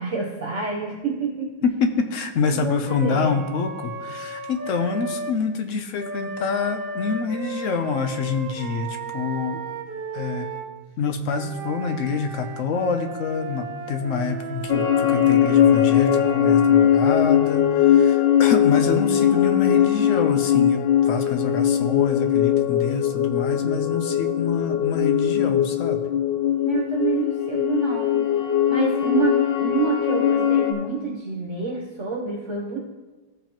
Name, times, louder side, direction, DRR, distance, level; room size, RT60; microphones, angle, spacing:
voice 1, 0.0-1.5 2.5-3.4 26.6-32.8, right 4 dB, 55° right, -2 dB, 0.9 m, -27 dB
voice 2, 1.6-9.6 10.1-10.5 11.0-26.0, left 5 dB, 65° left, 7 dB, 0.8 m, -26 dB
Wind instrument woodwind instrument, 2.9-5.4 6.0-10.7 11.3-16.7, right 4 dB, 75° right, 0.5 m, -35 dB
sound 1, 14.7-30.7, left 10 dB, 85° left, 1.4 m, -20 dB
14.5 x 5.1 x 2.9 m, 1.2 s
omnidirectional pair, 1.9 m